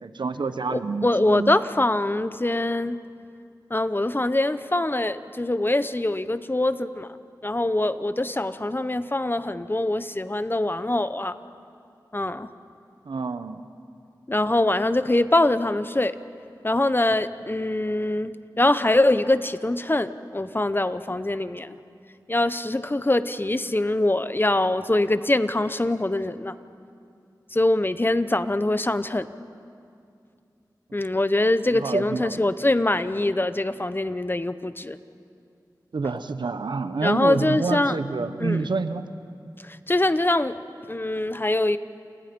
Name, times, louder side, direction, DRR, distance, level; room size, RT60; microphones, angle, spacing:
voice 1, 0.0-1.5 13.0-13.6 30.9-31.0 31.7-32.5 35.9-39.0, right 4 dB, 90° right, 10 dB, 1.0 m, -28 dB
voice 2, 0.7-3.0 3.7-7.1 7.4-11.4 12.1-12.5 14.3-16.2 16.6-21.7 22.3-26.5 27.5-29.3 30.9-35.0 37.0-38.0 38.4-38.6 39.6-40.6 40.9-41.8, left 1 dB, 30° left, 12 dB, 0.9 m, -23 dB
28.5 x 28.5 x 5.4 m, 2.4 s
cardioid pair, 45°, 8 cm